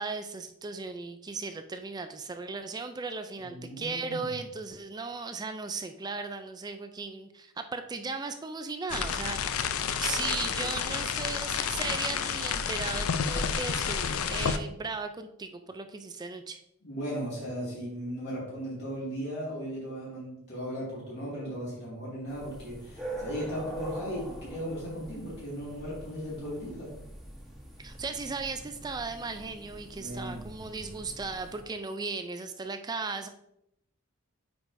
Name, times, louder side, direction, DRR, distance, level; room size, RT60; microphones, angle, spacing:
voice 1, 0.0-9.6 10.0-16.6 27.8-33.3, right 4 dB, 20° right, 8 dB, 0.3 m, -36 dB
voice 2, 3.4-4.2 16.8-26.9 30.0-30.4 30.7-30.8, equal, 50° left, -8 dB, 2.2 m, -37 dB
sound 1, 8.9-14.6, left 7 dB, 75° left, 0.5 m, -30 dB
sound 2, 22.3-31.6, right 1 dB, ahead, 1.2 m, -44 dB
8.1 x 4.7 x 2.6 m, 0.79 s
head